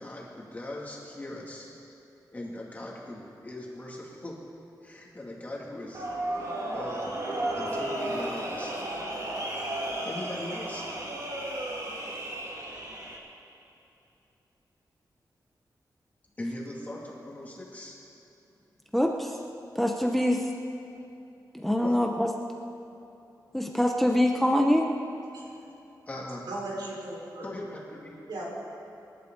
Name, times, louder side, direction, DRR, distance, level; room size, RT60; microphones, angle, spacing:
voice 1, 0.0-1.7 2.3-4.4 4.8-7.2 7.6-8.8 9.7-10.9 16.4-18.0 21.8-22.0 26.1-26.5 27.4-28.1, left 1 dB, 20° left, -4 dB, 2.6 m, -40 dB
sound 1, 5.9-13.2, right 1 dB, 50° right, 2.1 m, -33 dB
voice 2, 18.9-19.4 19.7-20.5 21.5-22.3 23.5-24.9, left 1 dB, ahead, 2 dB, 0.8 m, -24 dB
voice 3, 26.5-27.5 28.3-28.4, right 2 dB, 80° right, -4 dB, 4.7 m, -36 dB
26.5 x 12.0 x 4.0 m, 2.9 s
wide cardioid pair, 160°, 7 cm